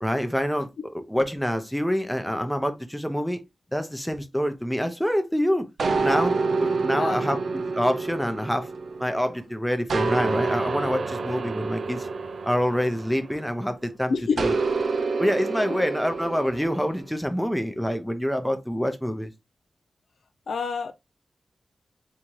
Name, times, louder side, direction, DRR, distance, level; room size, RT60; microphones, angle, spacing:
voice 1, 0.0-0.7 1.1-3.4 3.7-5.7 6.0-7.4 7.8-8.7 9.0-12.1 12.4-14.5 15.2-19.3, equal, ahead, 0.6 m, -26 dB
sound 1, 5.8-9.4 9.9-13.6 14.4-17.0, right 4 dB, 75° right, 0.4 m, -28 dB
voice 2, 6.9-7.3 14.1-14.5 20.5-20.9, left 5 dB, 90° left, 0.3 m, -28 dB
3.6 x 2.8 x 3.0 m
wide cardioid pair, 115°, 0 cm